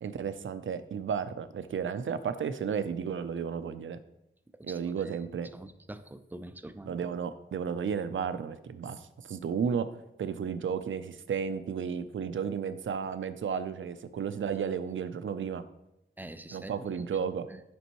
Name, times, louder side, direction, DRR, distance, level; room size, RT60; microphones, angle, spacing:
voice 1, 0.0-4.0 4.6-5.5 6.9-9.9 10.2-15.6 16.5-17.4, right 7 dB, 70° right, 12 dB, 0.5 m, -33 dB
voice 2, 4.6-5.2 5.5-6.9 16.2-16.8 17.1-17.2 17.5-17.6, right 1 dB, 10° right, 10 dB, 0.3 m, -45 dB
8.2 x 5.3 x 3.0 m, 0.86 s
wide cardioid pair, 135°, 21 cm